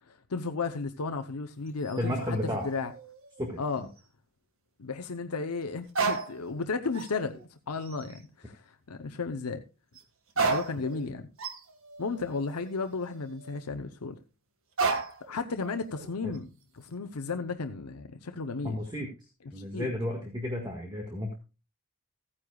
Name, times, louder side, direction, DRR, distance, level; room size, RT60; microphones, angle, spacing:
voice 1, 0.1-2.4 2.6-2.9 3.6-3.9 4.8-9.6 10.4-11.3 12.0-14.2 15.3-16.5 16.7-18.8 19.6-19.9, left 4 dB, 90° left, 0.8 m, -34 dB
sound 1, 1.7-3.7 4.0-4.1 5.9-6.6 6.9-7.4 7.8-8.2 9.9-10.0 10.3-13.6 14.8-15.3 15.6-16.4, right 4 dB, 65° right, 1.8 m, -34 dB
voice 2, 2.0-2.7 3.4-3.9 16.2-16.3 18.6-19.1 19.5-21.3, left 1 dB, 20° right, 1.7 m, -33 dB
15.5 x 9.8 x 2.3 m
head